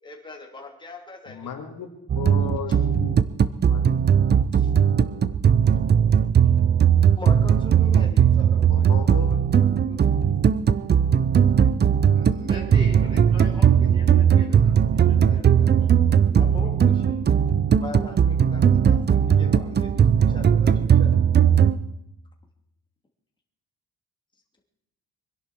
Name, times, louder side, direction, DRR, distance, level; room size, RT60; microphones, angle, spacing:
voice 1, 0.0-1.5 4.5-4.7 6.4-6.5 7.2-10.2 15.0-16.0 16.3-17.2 17.7-21.2, left 2 dB, 15° left, 1 dB, 2.9 m, -42 dB
voice 2, 1.3-3.2 3.6-3.9 8.7-9.3, left 7 dB, 65° left, 3 dB, 2.3 m, -35 dB
sound 1, 2.1-21.8, right 8 dB, 30° right, 0.5 m, -19 dB
voice 3, 12.1-16.5, equal, 15° right, 0 dB, 3.7 m, -42 dB
24.5 x 11.0 x 4.5 m, 0.85 s
cardioid pair, 150°, 35 cm